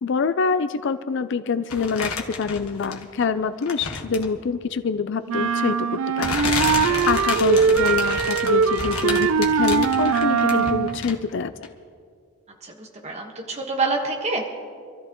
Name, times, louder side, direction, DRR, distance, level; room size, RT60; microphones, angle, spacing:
voice 1, 0.0-11.5, left 5 dB, 55° left, 12 dB, 0.4 m, -26 dB
sound 1, 1.7-3.2 3.6-4.4 5.4-5.5 6.2-11.3 11.6-11.7, left 4 dB, 80° left, 1.5 m, -30 dB
sound 2, 5.3-11.0, right 6 dB, 75° right, 0.4 m, -21 dB
voice 2, 12.6-14.5, right 3 dB, 30° right, 0 dB, 1.4 m, -27 dB
26.5 x 13.5 x 3.0 m, 2.2 s
head